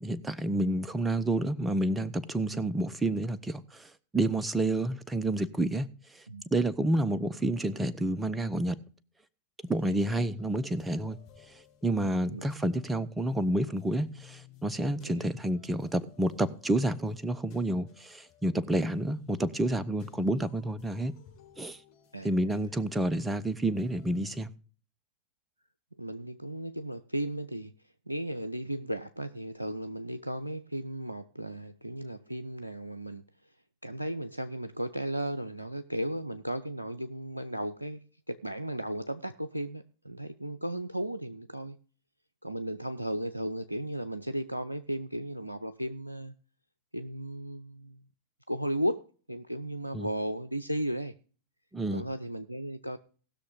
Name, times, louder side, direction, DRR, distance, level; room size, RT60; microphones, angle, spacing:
voice 1, 0.0-5.9 6.1-6.2 6.5-8.8 9.6-11.2 11.8-21.2 21.6-21.8 22.2-24.5 49.9-50.1 51.7-52.0, right 1 dB, 10° right, 0.8 m, -29 dB
sound 1, 9.6-24.4, left 10 dB, 45° left, 4.2 m, -57 dB
voice 2, 22.1-22.5 26.0-27.8 28.1-33.6 33.8-41.8 42.4-46.3 46.9-48.0 48.5-51.1 51.9-53.0, right 1 dB, 85° right, 0.5 m, -35 dB
18.5 x 6.4 x 3.8 m
figure-of-eight pair, 90°, 0 cm